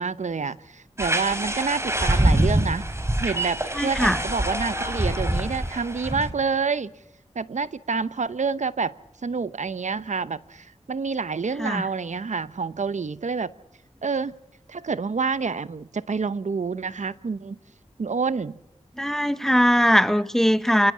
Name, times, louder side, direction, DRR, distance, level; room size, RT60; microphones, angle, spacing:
voice 1, 0.0-2.9 3.2-6.9 7.3-8.9 9.2-13.5 14.0-14.4 14.7-17.6 18.0-18.6, right 5 dB, 75° right, 0.9 m, -28 dB
sound 1, 1.0-6.3, right 1 dB, 20° right, 3.9 m, -25 dB
voice 2, 3.7-4.2 11.6-11.8 19.0-20.9, equal, 5° left, 1.2 m, -20 dB
27.0 x 19.5 x 7.4 m
wide cardioid pair, 70°, 12 cm